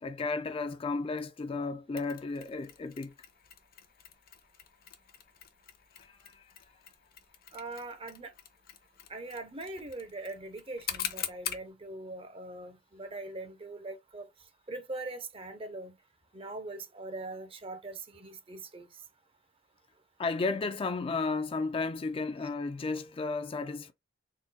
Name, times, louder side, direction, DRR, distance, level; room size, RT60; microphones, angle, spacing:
voice 1, 0.0-3.1 6.0-6.4 20.2-23.9, left 3 dB, 30° left, 0.3 m, -33 dB
Mechanisms, 2.0-11.7, left 9 dB, 55° left, 0.7 m, -44 dB
voice 2, 7.5-8.3 9.1-14.3 14.7-15.9 16.3-18.9, right 2 dB, 30° right, 0.6 m, -41 dB
3.8 x 2.2 x 4.0 m
head